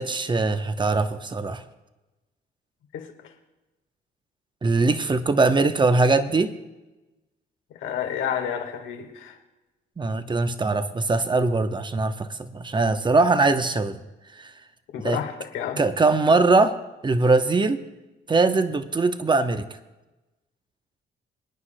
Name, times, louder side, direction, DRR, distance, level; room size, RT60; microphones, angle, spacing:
voice 1, 0.0-1.6 4.6-6.5 10.0-14.0 14.4-14.5 15.0-15.2 15.8-16.8 17.0-17.8 18.3-19.7, right 3 dB, 25° right, 10 dB, 0.8 m, -21 dB
voice 2, 2.9-3.3 7.7-9.4 14.9-15.8, left 8 dB, 85° left, 4 dB, 1.6 m, -30 dB
24.5 x 9.7 x 2.2 m, 1.1 s
cardioid pair, 75°, 20 cm